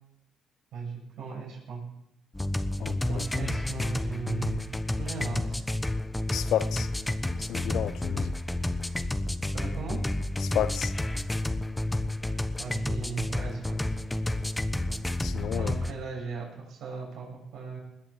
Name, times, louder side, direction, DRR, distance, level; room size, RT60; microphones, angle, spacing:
voice 1, 0.7-1.8 3.1-4.7 5.0-5.6 9.5-10.0 12.6-13.8 15.6-17.8, right 5 dB, 75° right, 7.2 m, -37 dB
sound 1, 2.3-15.9, left 1 dB, 10° left, 1.0 m, -30 dB
voice 2, 2.8-3.2 6.3-6.9 7.4-8.3 10.4-10.9 15.2-15.7, left 10 dB, 75° left, 0.8 m, -31 dB
20.5 x 7.7 x 7.4 m
cardioid pair, 90°, 0 cm